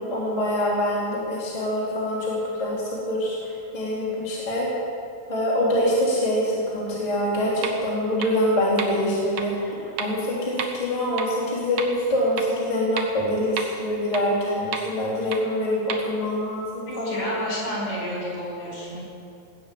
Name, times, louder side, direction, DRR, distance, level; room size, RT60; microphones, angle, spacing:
voice 1, 0.0-3.4 3.7-4.7 5.3-17.2, equal, 10° left, -8 dB, 3.1 m, -25 dB
sound 1, 7.6-7.7 8.2-8.3 8.8-8.9 9.4-9.5 10.0-10.1 10.6-10.7 11.2-11.3 11.8-11.9 12.4-12.5 13.0-13.1 13.6-13.7 14.1-14.2 14.7-14.8 15.3-15.4 15.9-16.0, right 7 dB, 90° right, 1.6 m, -29 dB
voice 2, 16.8-19.0, equal, 45° left, -4 dB, 6.2 m, -30 dB
19.5 x 8.0 x 8.6 m, 2.5 s
omnidirectional pair, 5.0 m